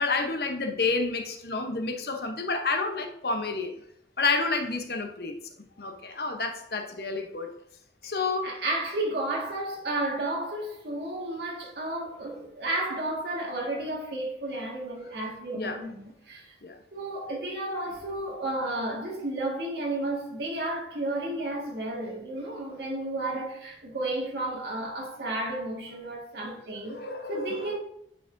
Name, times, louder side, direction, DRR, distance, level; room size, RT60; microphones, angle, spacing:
voice 1, 0.0-3.7 4.2-5.4 5.8-7.5 8.0-8.5 15.5-15.8 16.6-16.8 26.9-27.7, left 3 dB, 60° left, 0.8 m, -29 dB
voice 2, 8.4-16.6 16.9-27.8, right 2 dB, 70° right, 1.7 m, -32 dB
9.0 x 4.7 x 2.6 m
head